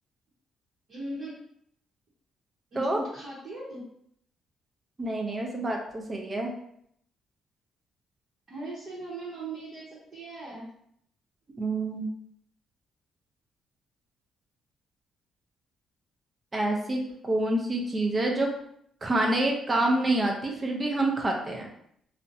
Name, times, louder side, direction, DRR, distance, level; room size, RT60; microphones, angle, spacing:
voice 1, 0.9-1.4 2.7-3.8 8.5-10.6, right 2 dB, 55° right, -9 dB, 0.8 m, -39 dB
voice 2, 5.0-6.5 11.6-12.1 16.5-18.5 19.0-21.7, right 2 dB, 30° right, 1 dB, 0.5 m, -27 dB
2.6 x 2.1 x 2.5 m, 0.71 s
cardioid pair, 90°, 0 cm